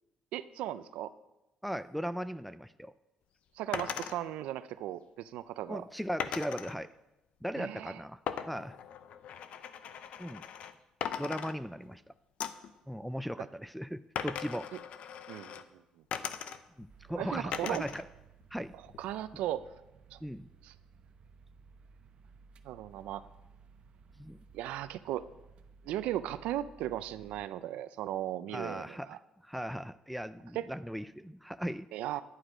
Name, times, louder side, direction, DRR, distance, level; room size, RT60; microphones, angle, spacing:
voice 1, 0.3-1.1 3.6-5.8 7.6-8.0 13.4-13.5 15.3-15.8 17.2-17.9 19.0-19.7 20.1-20.2 20.6-20.7 22.6-23.3 24.5-25.2 25.9-29.2 30.5-30.7 31.9-32.2, right 13 dB, 90° right, 12 dB, 0.5 m, -37 dB
voice 2, 1.6-2.9 5.7-6.9 7.4-8.2 8.5-8.8 10.2-10.4 11.2-12.0 12.9-14.7 16.8-18.1 18.5-18.7 20.2-20.5 24.2-24.4 28.5-29.1 29.4-31.9, equal, ahead, 11 dB, 0.4 m, -38 dB
sound 1, 3.7-4.2 6.2-6.8 8.3-10.7 11.0-12.0 12.4-12.7 14.2-15.6 16.1-16.9 17.5-18.1 18.4-19.2, left 8 dB, 70° left, 0.7 m, -39 dB
sound 2, 16.9-27.4, right 5 dB, 55° right, 0.8 m, -58 dB
11.0 x 9.7 x 5.0 m, 0.94 s
cardioid pair, 100°, 2 cm